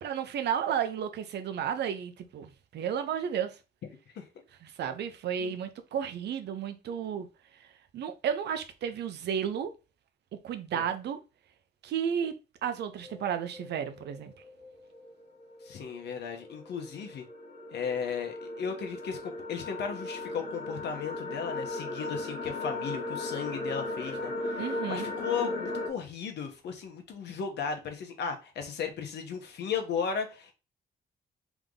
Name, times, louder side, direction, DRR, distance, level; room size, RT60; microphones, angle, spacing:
voice 1, 0.0-3.6 4.6-7.3 7.5-7.7 7.9-9.7 10.4-11.2 11.8-12.3 12.6-14.3 24.6-25.1, right 8 dB, 80° right, 0.7 m, -32 dB
sound 1, 13.0-25.9, left 2 dB, 45° left, 1.7 m, -37 dB
voice 2, 15.6-17.2 17.7-30.5, left 6 dB, 85° left, 1.2 m, -35 dB
3.6 x 3.5 x 3.7 m
wide cardioid pair, 145°, 17 cm